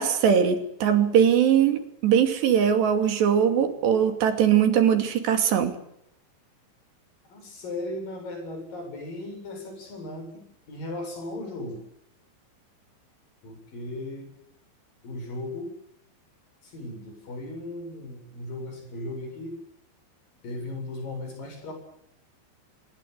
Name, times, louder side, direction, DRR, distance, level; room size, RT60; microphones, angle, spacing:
voice 1, 0.0-5.8, right 8 dB, 65° right, 8 dB, 4.6 m, -21 dB
voice 2, 7.3-11.8 13.4-14.3 15.0-15.8 16.6-19.6 20.4-21.7, left 2 dB, 45° left, 4 dB, 9.2 m, -36 dB
25.5 x 21.0 x 8.3 m, 0.73 s
omnidirectional pair, 5.4 m